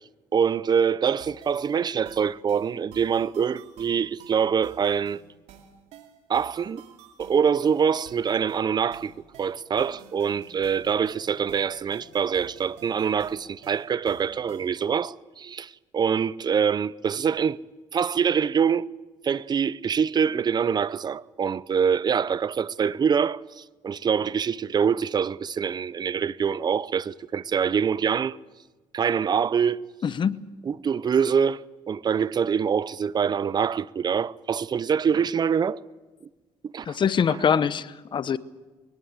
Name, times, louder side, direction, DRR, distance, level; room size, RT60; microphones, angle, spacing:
voice 1, 0.3-5.2 6.3-6.8 7.2-9.1 9.4-17.6 17.9-18.9 19.2-28.4 28.9-29.8 30.7-35.8 36.7-37.0, right 7 dB, 40° right, 0.7 m, -25 dB
sound 1, 1.2-14.8, right 7 dB, 85° right, 2.8 m, -51 dB
voice 2, 30.0-30.4 36.9-38.4, left 7 dB, 45° left, 1.0 m, -24 dB
22.0 x 19.0 x 8.1 m
cardioid pair, 95°, 12 cm